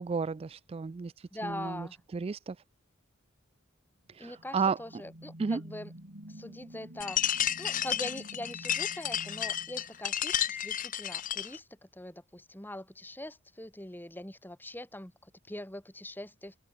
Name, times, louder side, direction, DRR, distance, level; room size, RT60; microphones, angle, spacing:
voice 1, 0.0-1.1 1.4-1.9 2.1-2.6 4.1-4.8 5.4-5.6, right 5 dB, 30° right, 0.3 m, -32 dB
voice 2, 1.3-2.0 4.2-5.9 6.3-7.2 7.6-16.6, left 1 dB, 10° left, 2.6 m, -42 dB
sound 1, 4.1-10.6, right 1 dB, 55° right, 4.0 m, -50 dB
sound 2, 7.0-11.6, left 10 dB, 40° left, 0.8 m, -32 dB
head